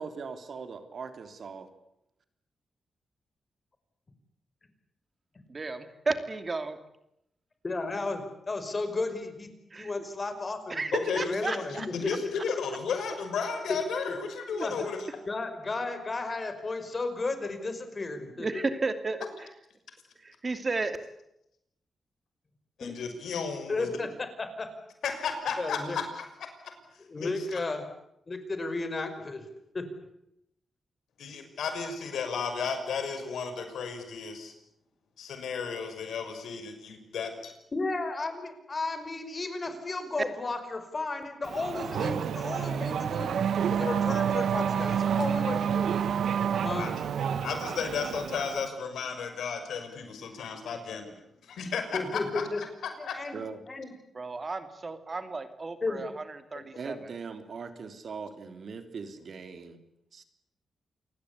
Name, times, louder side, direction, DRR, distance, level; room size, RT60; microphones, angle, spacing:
voice 1, 0.0-1.7 53.3-53.6 56.7-59.8 60.1-60.2, right 5 dB, 60° right, 8 dB, 3.4 m, -40 dB
voice 2, 5.5-6.8 9.7-10.1 10.7-11.9 14.5-14.9 18.4-19.2 20.4-21.0 54.1-57.0, right 3 dB, 35° right, 9 dB, 2.7 m, -33 dB
voice 3, 7.6-9.5 9.8-10.8 11.2-12.3 14.1-14.2 14.6-14.9 15.3-18.5 22.8-23.0 23.7-24.7 25.6-26.0 27.1-27.9 28.3-29.4 29.7-29.9 37.7-43.3 43.7-46.1 46.6-47.0 51.9-52.6 53.0-53.4 53.7-53.9 55.8-56.0, left 3 dB, 35° left, 9 dB, 5.3 m, -33 dB
voice 4, 10.9-15.0 22.8-23.9 25.0-26.3 27.2-27.6 31.2-34.5 35.2-37.5 46.8-46.9 47.4-51.1 51.4-52.7 53.1-53.2 56.5-56.6, left 5 dB, 90° left, 7 dB, 6.1 m, -34 dB
Race car auto racing / Accelerating revving vroom, 41.4-48.7, right 8 dB, 85° right, 1.5 m, -29 dB
28.5 x 20.0 x 8.5 m, 0.80 s
cardioid pair, 105°, 0 cm